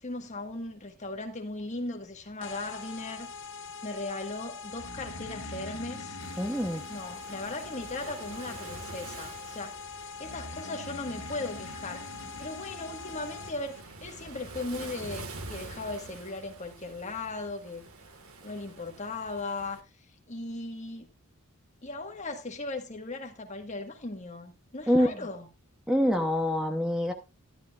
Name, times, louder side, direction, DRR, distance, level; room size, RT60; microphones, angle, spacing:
voice 1, 0.0-3.3 3.8-6.2 6.9-12.0 12.4-17.9 18.4-19.8 20.3-21.1 21.8-25.5, left 2 dB, 30° left, 1.6 m, -38 dB
sound 1, 2.4-13.8, left 5 dB, 55° left, 1.1 m, -43 dB
Breathing, 4.7-8.4 10.2-13.3, left 1 dB, 70° left, 2.3 m, -45 dB
Waves surf, 6.2-19.8, right 3 dB, 70° right, 1.7 m, -46 dB
voice 2, 6.4-6.8 24.9-25.2 25.9-27.1, equal, 5° right, 0.9 m, -25 dB
12.0 x 12.0 x 2.5 m
head